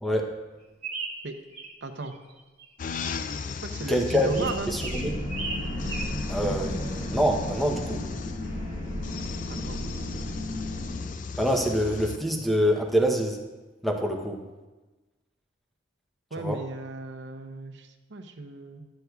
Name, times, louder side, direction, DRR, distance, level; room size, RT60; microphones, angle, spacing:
sound 1, 0.8-1.7 2.0-2.6 4.3-6.0, right 4 dB, 35° right, 1.2 m, -36 dB
voice 1, 1.8-2.1 3.6-4.7 9.5-9.8 16.3-18.8, right 2 dB, 65° right, 5 dB, 0.7 m, -36 dB
sound 2, 2.8-12.2, left 5 dB, 45° left, 0.3 m, -37 dB
voice 2, 3.9-5.1 6.3-8.0 11.4-13.4 13.8-14.4 16.4-16.6, equal, ahead, 2 dB, 0.7 m, -25 dB
sound 3, 4.3-11.1, left 1 dB, 80° left, 1.9 m, -34 dB
11.5 x 7.9 x 2.3 m, 1.2 s
head